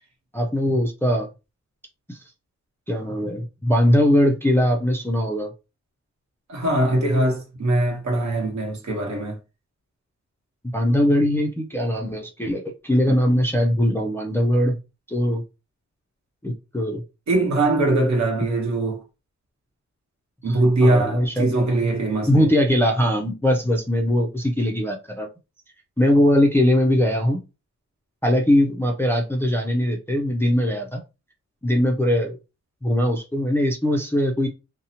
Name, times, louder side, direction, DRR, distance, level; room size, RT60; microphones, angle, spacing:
voice 1, 0.3-1.3 2.1-2.2 2.9-5.5 10.7-14.8 15.1-15.4 16.4-17.0 20.5-21.5 22.3-25.3 26.0-27.4 28.2-31.0 31.6-32.4 32.8-34.5, left 1 dB, 10° left, 0.3 m, -21 dB
voice 2, 6.5-9.4 13.1-13.2 17.3-19.0 20.4-22.5, right 2 dB, 70° right, 1.0 m, -21 dB
2.6 x 2.0 x 2.8 m
wide cardioid pair, 170°, 30 cm